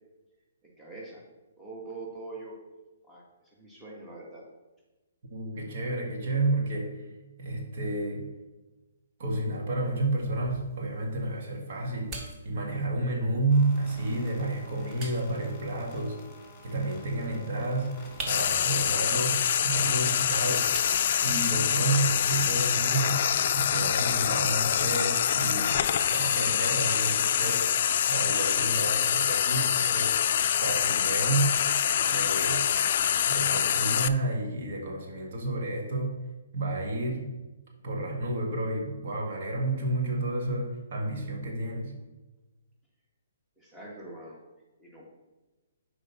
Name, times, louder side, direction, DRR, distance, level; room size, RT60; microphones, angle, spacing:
voice 1, 0.6-1.2 1.6-2.6 3.0-4.4 43.6-44.4 44.8-45.0, right 2 dB, 10° right, -4 dB, 1.8 m, -43 dB
voice 2, 5.3-6.9 7.4-8.3 9.2-12.2 12.4-16.2 16.6-17.9 18.2-20.7 21.2-23.2 23.5-25.8 26.1-27.7 28.1-30.1 30.6-31.5 32.1-32.7 33.3-36.2 36.5-37.3 37.8-41.9, right 2 dB, 55° right, 0 dB, 1.8 m, -30 dB
sound 1, 9.8-21.8, right 2 dB, 25° right, 1.3 m, -48 dB
sound 2, 13.5-27.8, left 3 dB, 25° left, 2.3 m, -49 dB
Frying (food), 18.3-34.1, left 9 dB, 55° left, 0.4 m, -25 dB
6.6 x 5.0 x 5.8 m, 1.1 s
hypercardioid pair, 140°, 0 cm